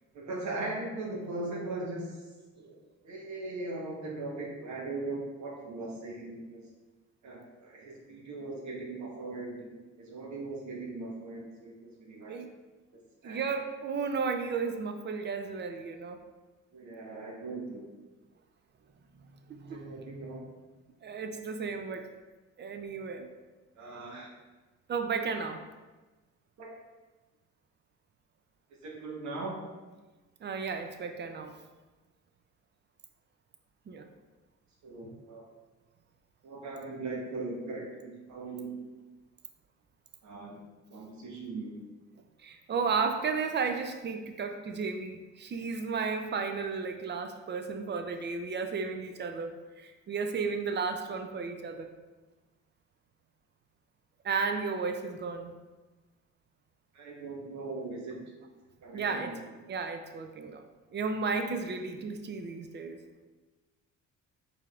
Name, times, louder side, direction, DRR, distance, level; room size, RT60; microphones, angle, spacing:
voice 1, 0.1-2.2 2.5-6.7 7.2-9.7 10.0-12.3 13.2-13.5 16.7-17.8 19.7-20.4 23.8-24.3 26.6-26.7 28.8-29.6 34.8-35.5 36.4-38.8 40.2-40.6 40.9-41.8 56.9-58.2 58.8-59.5, right 2 dB, 65° right, -2 dB, 1.1 m, -39 dB
voice 2, 13.2-16.2 19.5-20.4 21.0-22.1 22.6-23.3 24.9-25.6 30.4-31.6 33.9-34.1 42.4-51.9 54.2-55.5 58.9-59.3 59.7-60.7 60.9-63.0, right 5 dB, 35° right, 6 dB, 0.4 m, -33 dB
4.6 x 3.5 x 2.4 m, 1.2 s
cardioid pair, 90°, 30 cm